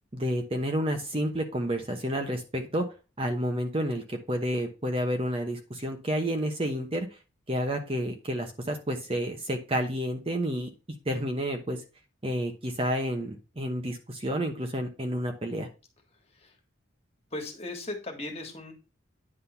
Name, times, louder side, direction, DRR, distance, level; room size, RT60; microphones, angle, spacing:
voice 1, 0.1-2.8 3.2-7.1 7.5-10.7 11.1-11.8 12.2-15.7, equal, 25° right, 3 dB, 1.0 m, -30 dB
voice 2, 16.1-16.6 17.3-18.7, left 2 dB, 30° left, 2 dB, 2.0 m, -38 dB
9.8 x 3.8 x 5.7 m, 0.31 s
head